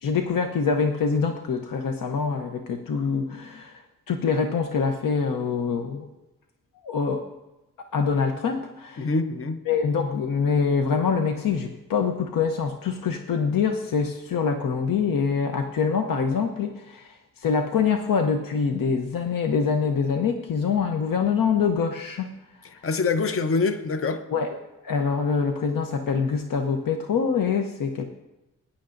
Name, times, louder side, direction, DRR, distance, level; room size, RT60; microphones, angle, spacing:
voice 1, 0.0-6.1 6.8-7.2 7.9-9.1 9.7-22.3 24.3-24.6 24.8-28.1, left 5 dB, 80° left, 5 dB, 0.8 m, -25 dB
voice 2, 9.0-9.6 22.8-24.2, left 4 dB, 40° left, 9 dB, 0.7 m, -25 dB
20.0 x 10.0 x 2.6 m, 0.99 s
wide cardioid pair, 125°, 33 cm